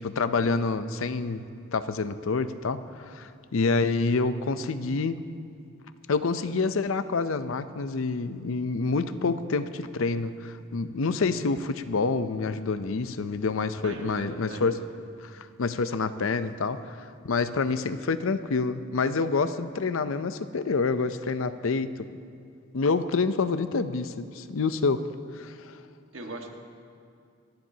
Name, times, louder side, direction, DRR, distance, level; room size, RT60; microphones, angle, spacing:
voice 1, 0.0-1.4 1.7-5.2 6.1-14.8 15.2-22.1 22.7-25.0 25.3-25.8, left 4 dB, 75° left, 11 dB, 0.5 m, -27 dB
voice 2, 13.8-14.8 26.1-26.5, right 2 dB, 65° right, 2 dB, 1.5 m, -39 dB
28.5 x 10.5 x 2.8 m, 2.4 s
head